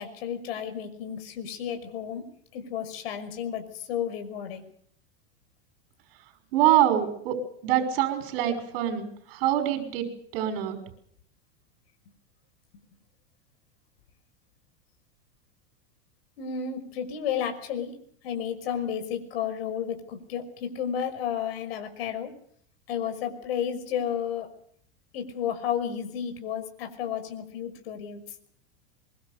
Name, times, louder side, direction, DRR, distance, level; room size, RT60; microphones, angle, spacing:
voice 1, 0.0-2.3 2.5-4.6 16.4-17.9 18.2-22.3 22.9-24.5 25.1-28.2, left 8 dB, 75° left, 6 dB, 5.8 m, -32 dB
voice 2, 6.5-7.3 7.6-10.1 10.3-10.8, right 11 dB, 60° right, 5 dB, 5.8 m, -24 dB
23.5 x 23.5 x 6.8 m, 0.65 s
supercardioid pair, 140°, 31 cm